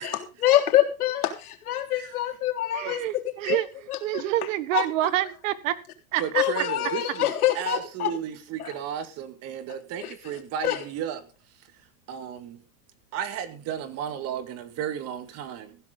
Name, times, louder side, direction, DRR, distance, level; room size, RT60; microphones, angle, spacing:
voice 1, 0.0-3.6 3.9-4.2 4.7-4.9 6.3-8.1 8.6-8.7 10.0-10.1 10.6-10.8, left 13 dB, 85° left, 3.6 m, -25 dB
voice 2, 2.7-3.7 4.0-5.8 6.1-6.4, right 14 dB, 60° right, 1.6 m, -27 dB
voice 3, 6.2-11.2 12.1-12.6 13.1-15.8, right 8 dB, 35° right, 2.1 m, -34 dB
15.0 x 12.0 x 3.9 m
supercardioid pair, 150°, 43 cm